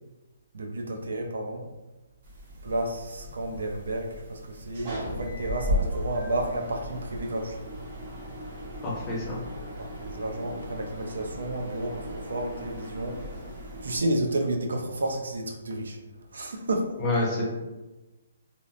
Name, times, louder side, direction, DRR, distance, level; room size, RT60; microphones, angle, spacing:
voice 1, 0.5-1.6 2.6-7.6 9.8-13.2 13.6-16.0 16.3-17.0, right 1 dB, 85° right, 3 dB, 0.4 m, -31 dB
sound 1, 2.2-14.0, equal, 35° right, 0.6 m, -36 dB
voice 2, 8.8-9.4 17.0-17.4, left 2 dB, 15° left, -4 dB, 0.5 m, -27 dB
2.8 x 2.0 x 2.5 m, 1.1 s
hypercardioid pair, 170°, 0 cm